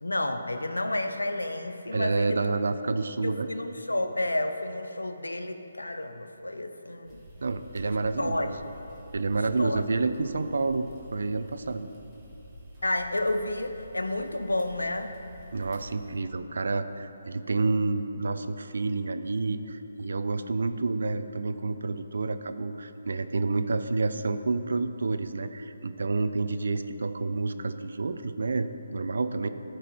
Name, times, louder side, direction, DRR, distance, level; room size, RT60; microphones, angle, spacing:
voice 1, 0.0-2.4 3.2-7.2 7.8-8.6 9.3-9.8 12.8-15.1, left 1 dB, 85° left, 8 dB, 0.6 m, -31 dB
voice 2, 1.9-3.5 7.4-8.5 9.1-11.9 15.5-29.5, right 3 dB, 65° right, 10 dB, 0.5 m, -29 dB
sound 1, 7.0-16.2, equal, 15° right, 1.9 m, -50 dB
14.0 x 4.8 x 4.5 m, 3.0 s
figure-of-eight pair, 145°, 0 cm